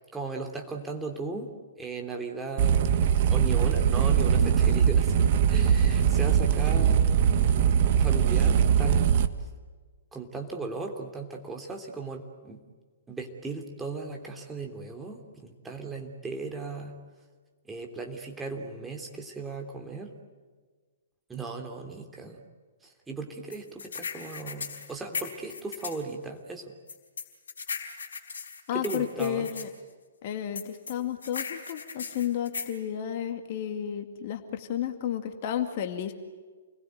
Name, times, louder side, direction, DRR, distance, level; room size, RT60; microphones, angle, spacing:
voice 1, 0.1-1.5 1.8-2.9 3.3-7.4 7.9-9.2 10.1-12.6 13.1-17.0 17.7-20.1 21.3-22.4 22.8-26.7 28.7-29.5, right 4 dB, 10° right, 2 dB, 3.2 m, -37 dB
sound 1, 2.6-9.3, right 8 dB, 45° right, 1.5 m, -22 dB
sound 2, 23.5-26.0 26.9-29.7 30.6-32.8, left 5 dB, 60° left, 4.6 m, -37 dB
voice 2, 28.7-29.7 30.2-36.1, left 10 dB, 40° left, 6 dB, 2.2 m, -32 dB
29.0 x 21.5 x 9.3 m, 1.4 s
figure-of-eight pair, 120°, 0 cm